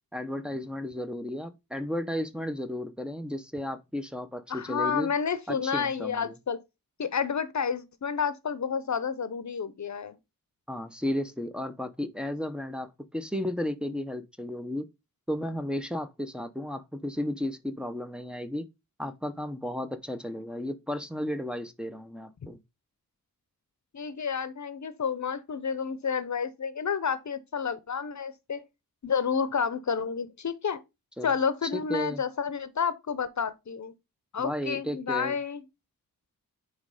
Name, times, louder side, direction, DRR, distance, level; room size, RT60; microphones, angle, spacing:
voice 1, 0.1-5.1 5.5-6.3 10.7-14.9 15.3-18.7 19.0-22.6 31.2-31.3 31.6-32.2 34.4-35.4, left 1 dB, 5° right, 0.8 m, -34 dB
voice 2, 4.5-6.6 7.0-10.2 23.9-28.6 29.0-30.8 31.2-33.9 34.3-35.6, left 6 dB, 55° left, 0.9 m, -30 dB
9.4 x 3.2 x 4.9 m
wide cardioid pair, 105°, 35 cm